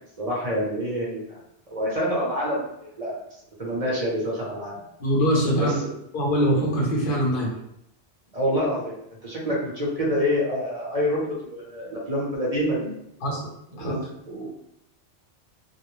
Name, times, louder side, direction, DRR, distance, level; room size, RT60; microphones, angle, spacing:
voice 1, 0.2-1.4 1.7-3.2 3.6-4.8 5.6-5.9 8.3-8.9 9.2-12.9 13.7-14.5, equal, 40° right, -5 dB, 0.7 m, -27 dB
voice 2, 5.0-5.8 6.1-7.6 13.2-13.4 13.8-13.9, equal, 55° left, -2 dB, 0.8 m, -23 dB
2.3 x 2.0 x 3.0 m, 0.79 s
omnidirectional pair, 1.1 m